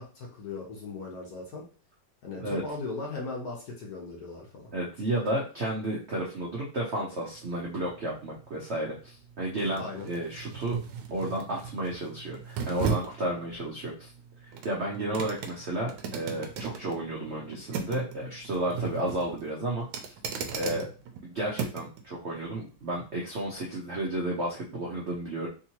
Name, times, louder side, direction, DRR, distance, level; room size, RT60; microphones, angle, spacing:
voice 1, 0.0-1.6 2.2-4.7 9.8-10.1 20.6-20.9, left 3 dB, 55° left, -1 dB, 1.2 m, -38 dB
voice 2, 4.7-10.8 11.1-14.1 14.4-20.1 20.5-20.9 21.2-25.5, right 1 dB, 65° right, -3 dB, 0.6 m, -32 dB
sound 1, 7.3-22.0 22.4-22.6, right 6 dB, 80° right, 1.3 m, -37 dB
3.6 x 2.8 x 2.8 m, 0.35 s
omnidirectional pair, 2.2 m